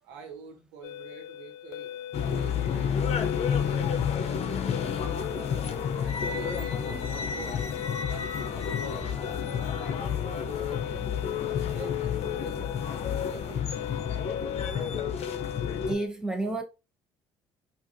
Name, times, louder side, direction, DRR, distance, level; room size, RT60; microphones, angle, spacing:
voice 1, 0.0-11.1 11.4-13.8, right 5 dB, 75° right, 1.0 m, -47 dB
sound 1, 0.8-16.1, left 10 dB, 75° left, 0.4 m, -41 dB
sound 2, 2.1-15.9, left 7 dB, 50° left, 0.8 m, -30 dB
voice 2, 15.9-16.6, right 2 dB, 5° right, 1.0 m, -30 dB
4.8 x 2.6 x 2.6 m
hypercardioid pair, 60°, 14 cm